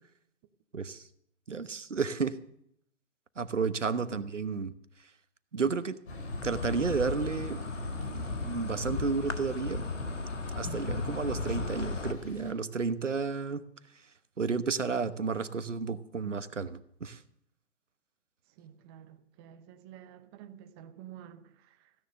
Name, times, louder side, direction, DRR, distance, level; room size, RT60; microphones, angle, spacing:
voice 1, 1.5-2.4 3.4-4.7 5.5-6.0 6.4-7.6 8.4-9.8 10.5-13.6 14.4-17.2, right 5 dB, 85° right, 1.1 m, -32 dB
Insect, 6.1-12.1, left 3 dB, 85° left, 1.6 m, -36 dB
sound 1, 6.1-12.5, left 1 dB, 60° left, 5.3 m, -42 dB
voice 2, 18.6-21.9, right 10 dB, 20° right, 0.9 m, -50 dB
16.0 x 10.5 x 6.5 m
figure-of-eight pair, 130°, 36 cm